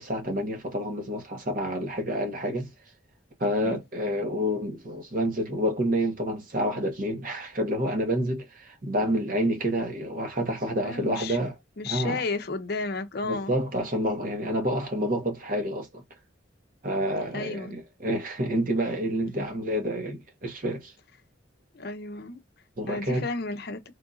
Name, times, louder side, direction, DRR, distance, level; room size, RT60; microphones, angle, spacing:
voice 1, 0.0-2.7 3.4-11.5 11.8-12.2 13.2-16.0 16.8-20.9 22.8-23.3, equal, 45° right, 1.1 m, -28 dB
voice 2, 10.8-11.4 11.8-13.6 17.3-17.7 19.2-19.5 21.7-22.4 22.9-23.8, left 3 dB, 55° left, 0.6 m, -33 dB
3.7 x 2.5 x 2.4 m
head